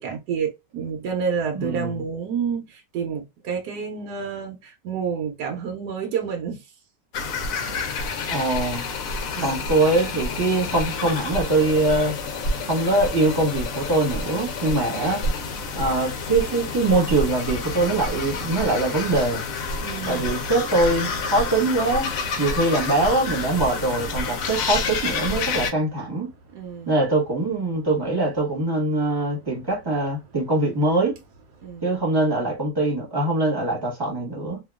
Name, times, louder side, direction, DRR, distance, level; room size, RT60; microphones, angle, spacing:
voice 1, 0.0-6.7 9.3-9.7 19.8-20.4 26.5-27.0 31.6-32.1, right 6 dB, 70° right, 1.1 m, -29 dB
voice 2, 1.5-2.0 8.3-8.8 9.4-12.1 12.6-15.2 15.7-19.5 20.1-22.1 22.4-26.3 26.9-31.1 31.8-34.6, right 2 dB, 15° right, 0.9 m, -23 dB
sound 1, 7.1-25.7, left 3 dB, 65° left, 0.9 m, -29 dB
2.9 x 2.3 x 2.3 m
omnidirectional pair, 1.8 m